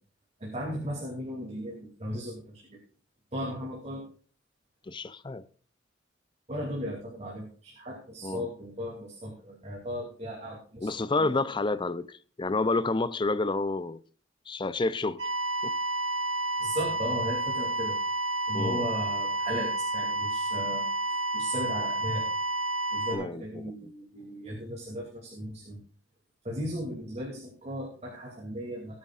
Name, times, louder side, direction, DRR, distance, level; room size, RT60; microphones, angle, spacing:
voice 1, 0.4-2.8 3.3-4.1 6.5-11.3 16.6-18.0 18.5-22.3 22.9-25.8 26.4-29.0, equal, 35° right, 2.7 m, -36 dB
voice 2, 4.9-5.4 8.2-8.5 10.8-14.0 14.5-15.3 15.6-15.7 18.5-18.9 23.1-23.4, left 3 dB, 25° left, 0.6 m, -29 dB
sound 1, 15.2-23.1, right 2 dB, 75° right, 4.1 m, -30 dB
18.5 x 9.6 x 2.4 m
head